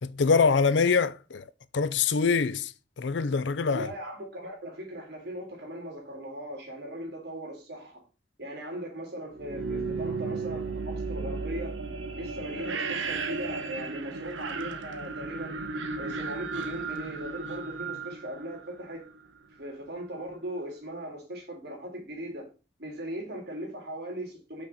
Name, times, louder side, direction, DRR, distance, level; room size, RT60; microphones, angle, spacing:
voice 1, 0.0-1.4 1.7-2.7 3.0-3.9, left 5 dB, 70° left, 0.5 m, -24 dB
voice 2, 3.7-8.0 8.4-11.8 12.1-15.6 16.0-19.0 19.6-22.5 22.8-24.6, right 1 dB, 55° right, 3.2 m, -39 dB
sound 1, 9.3-19.2, right 4 dB, 85° right, 1.0 m, -34 dB
6.4 x 6.1 x 4.2 m
head